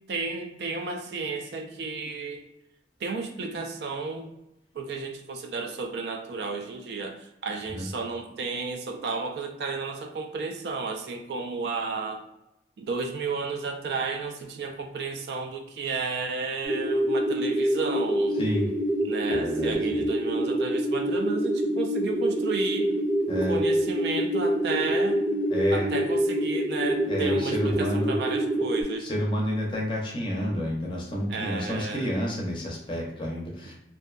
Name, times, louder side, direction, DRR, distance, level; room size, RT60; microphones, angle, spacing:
voice 1, 0.1-2.4 3.0-4.3 4.7-12.2 12.8-18.4 19.0-23.0 23.5-25.2 25.7-29.1 31.3-32.1, right 4 dB, 65° right, 5 dB, 0.3 m, -32 dB
sound 1, 16.6-28.8, right 1 dB, ahead, 0.8 m, -26 dB
voice 2, 18.4-18.7 19.3-19.8 23.3-23.6 25.5-25.9 27.1-28.1 29.0-33.7, equal, 25° left, -2 dB, 0.5 m, -29 dB
2.5 x 2.2 x 2.3 m, 0.88 s
head